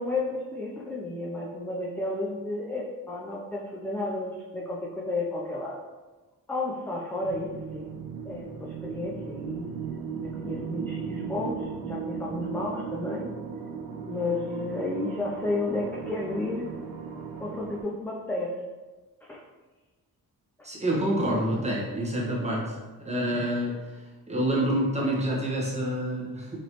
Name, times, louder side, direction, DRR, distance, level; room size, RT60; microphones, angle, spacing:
voice 1, 0.0-5.8 6.5-8.0 8.2-9.7 10.1-13.3 14.0-16.7 17.4-18.5 19.2-19.4 20.6-20.7 23.3-23.5, left 2 dB, 5° left, -4 dB, 0.4 m, -32 dB
sound 1, 7.2-17.8, right 6 dB, 75° right, 0.7 m, -37 dB
voice 2, 20.6-22.8 23.0-26.6, right 1 dB, 20° right, -4 dB, 1.1 m, -27 dB
4.1 x 3.0 x 3.0 m, 1.2 s
cardioid pair, 95°, 36 cm